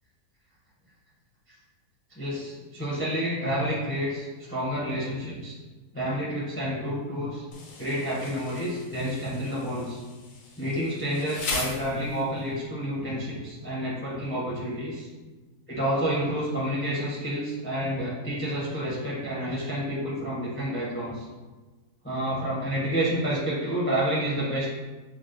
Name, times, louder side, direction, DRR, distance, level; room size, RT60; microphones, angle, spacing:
voice 1, 2.1-5.6 5.9-7.4 7.8-10.0 10.6-15.1 15.7-21.2 22.0-24.7, equal, 15° left, -7 dB, 0.4 m, -29 dB
Insect, 7.5-12.5, left 3 dB, 65° left, 0.9 m, -38 dB
6.1 x 2.0 x 2.5 m, 1.2 s
omnidirectional pair, 1.8 m